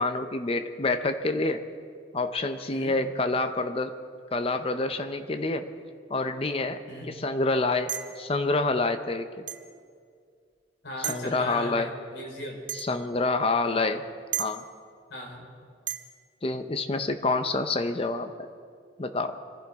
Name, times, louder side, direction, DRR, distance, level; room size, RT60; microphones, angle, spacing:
voice 1, 0.0-1.6 2.1-3.9 4.3-5.7 6.1-9.4 11.1-11.9 12.7-14.0 14.4-14.6 16.4-18.3 19.0-19.4, left 3 dB, 30° left, 9 dB, 0.7 m, -27 dB
sound 1, 7.9-8.2 9.5-9.7 11.0-11.3 12.7-12.9 14.3-14.5 15.9-16.1, right 11 dB, 75° right, 0.9 m, -33 dB
voice 2, 10.8-12.6 13.6-13.8 15.1-15.5, left 1 dB, 80° left, -1 dB, 4.1 m, -38 dB
25.0 x 15.5 x 3.6 m, 2.2 s
head